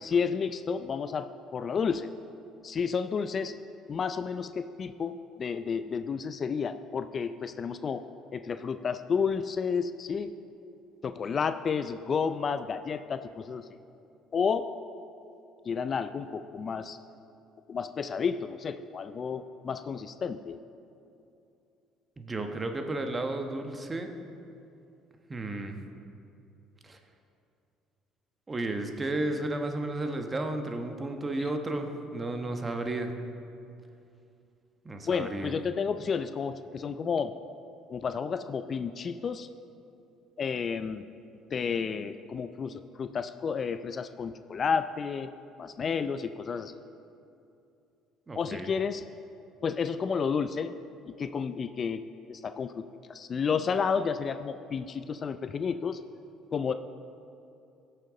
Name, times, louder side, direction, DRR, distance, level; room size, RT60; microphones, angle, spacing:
voice 1, 0.0-2.1 2.6-3.6 3.9-8.0 8.3-10.3 11.0-13.6 14.3-14.6 15.7-17.0 17.7-20.6 31.4-31.5 35.1-37.3 37.9-39.5 40.4-41.0 41.5-45.3 45.6-46.8 48.3-49.0 49.6-50.8 51.2-52.0 52.3-52.7 53.1-56.0 56.5-56.7, left 6 dB, 45° left, 10 dB, 0.4 m, -31 dB
voice 2, 22.2-24.1 25.3-25.7 26.8-27.0 28.5-33.1 34.8-35.5 48.3-48.7, right 2 dB, 25° right, 5 dB, 1.1 m, -33 dB
16.5 x 6.6 x 3.8 m, 2.7 s
supercardioid pair, 75°, 0 cm